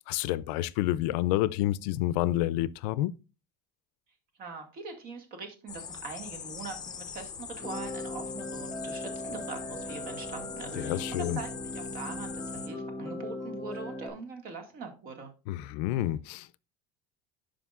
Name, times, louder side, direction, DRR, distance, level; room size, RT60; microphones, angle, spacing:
voice 1, 0.0-3.1 10.8-11.4 15.5-16.6, left 15 dB, 85° left, 0.4 m, -29 dB
voice 2, 4.4-15.3, right 4 dB, 45° right, 1.9 m, -42 dB
sound 1, 5.7-12.7, left 7 dB, 20° left, 0.7 m, -42 dB
sound 2, 7.6-14.1, left 1 dB, 5° left, 2.2 m, -38 dB
11.5 x 5.1 x 2.4 m
cardioid pair, 150°, 21 cm